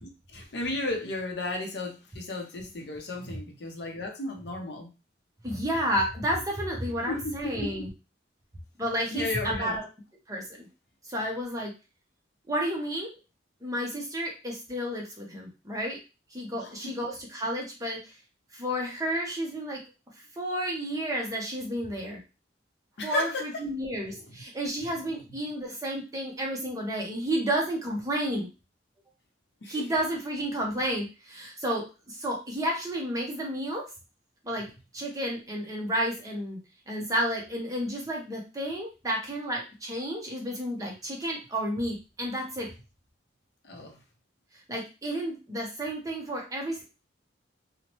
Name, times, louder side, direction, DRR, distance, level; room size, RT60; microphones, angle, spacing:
voice 1, 0.0-4.9 7.1-7.9 9.1-9.8 16.5-16.9 23.0-23.6 24.0-24.4 29.6-29.8 43.6-44.0, left 2 dB, 60° left, 2 dB, 0.6 m, -34 dB
voice 2, 5.4-7.9 8.8-9.9 10.3-10.7 11.1-11.7 12.5-13.1 13.6-16.0 16.3-18.0 18.5-19.8 20.4-22.2 23.0-28.5 29.7-33.9 34.4-34.7 34.9-36.6 36.9-42.7 44.7-46.8, equal, 20° right, -1 dB, 0.6 m, -31 dB
2.9 x 2.1 x 2.9 m, 0.30 s
head